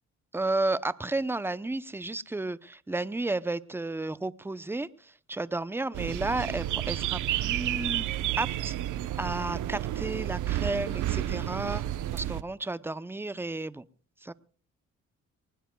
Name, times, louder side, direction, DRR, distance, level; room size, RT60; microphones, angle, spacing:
voice 1, 0.3-8.8 9.2-11.8 12.1-13.8 14.2-14.3, right 2 dB, 10° right, 16 dB, 0.7 m, -32 dB
sound 1, 5.9-12.4, right 13 dB, 80° right, 0.9 m, -31 dB
23.5 x 19.5 x 2.3 m, 0.41 s
cardioid pair, 90°, 30 cm